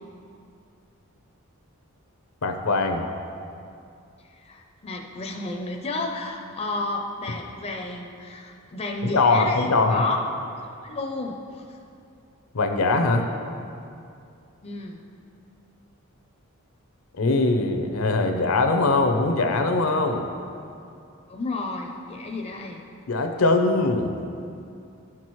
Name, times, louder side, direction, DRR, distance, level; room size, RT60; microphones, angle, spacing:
voice 1, 2.4-3.1 9.0-10.0 12.5-13.2 17.2-20.3 23.1-24.1, left 3 dB, 75° left, 5 dB, 0.6 m, -21 dB
voice 2, 4.3-10.2 10.8-11.7 14.6-15.0 21.3-22.8, left 2 dB, 30° left, 2 dB, 0.5 m, -32 dB
12.0 x 6.0 x 3.1 m, 2.5 s
head